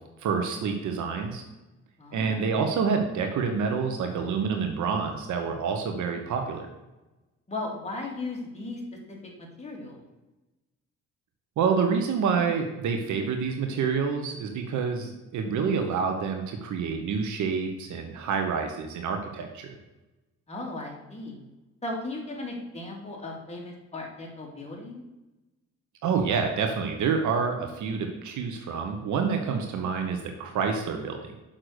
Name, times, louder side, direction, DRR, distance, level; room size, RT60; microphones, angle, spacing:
voice 1, 0.2-1.4 2.1-6.7 11.6-19.7 26.0-31.2, right 5 dB, 75° right, 4 dB, 1.2 m, -28 dB
voice 2, 2.0-2.4 7.5-8.8 9.1-10.0 20.5-21.4 21.8-25.0, left 2 dB, 20° left, -1 dB, 2.7 m, -36 dB
6.5 x 5.8 x 6.6 m, 1.0 s
cardioid pair, 90°, 30 cm